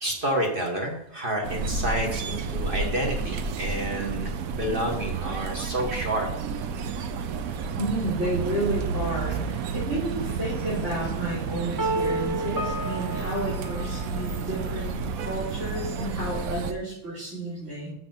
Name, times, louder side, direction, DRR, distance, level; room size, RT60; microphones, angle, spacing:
voice 1, 0.0-6.3 9.3-9.4, right 1 dB, 40° right, 0 dB, 1.5 m, -29 dB
sound 1, 1.4-16.7, right 5 dB, 85° right, 1.1 m, -31 dB
voice 2, 7.7-17.9, right 1 dB, 60° right, -10 dB, 4.0 m, -31 dB
sound 2, 11.8-14.7, right 1 dB, 20° right, 0.7 m, -31 dB
6.7 x 6.4 x 5.6 m, 0.78 s
omnidirectional pair, 1.4 m